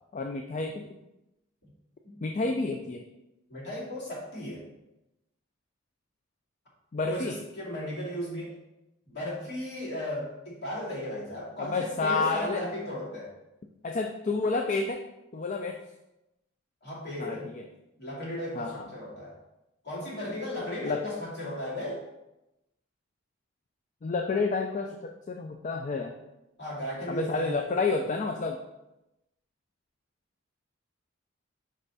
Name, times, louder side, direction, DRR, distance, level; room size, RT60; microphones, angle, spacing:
voice 1, 0.1-1.0 2.2-3.0 6.9-7.3 11.6-12.6 13.8-15.0 15.3-15.8 17.2-17.6 18.5-18.8 20.8-21.0 24.0-25.0 25.3-26.1 27.1-28.6, left 3 dB, 35° left, 3 dB, 0.4 m, -29 dB
voice 2, 3.5-4.7 7.1-8.6 9.1-13.3 16.8-17.5 18.0-19.4 19.8-22.0 26.6-27.6, left 1 dB, 55° left, -5 dB, 2.5 m, -36 dB
5.6 x 5.0 x 4.1 m, 0.93 s
head